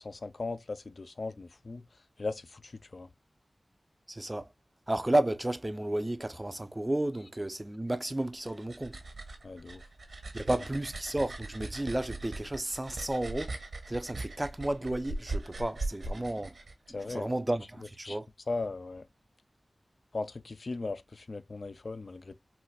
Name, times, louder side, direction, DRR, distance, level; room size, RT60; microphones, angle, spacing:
voice 1, 0.0-1.9 2.2-3.1 9.4-9.8 16.9-17.3 18.0-18.2 18.5-19.0 20.1-22.4, left 3 dB, 60° left, 0.4 m, -38 dB
voice 2, 4.1-4.5 4.9-9.0 10.3-13.6 13.9-16.6 16.9-18.3, right 1 dB, 25° right, 0.5 m, -32 dB
sound 1, 8.2-17.2, right 2 dB, 75° right, 0.9 m, -40 dB
4.0 x 2.6 x 2.2 m
wide cardioid pair, 55°, 0 cm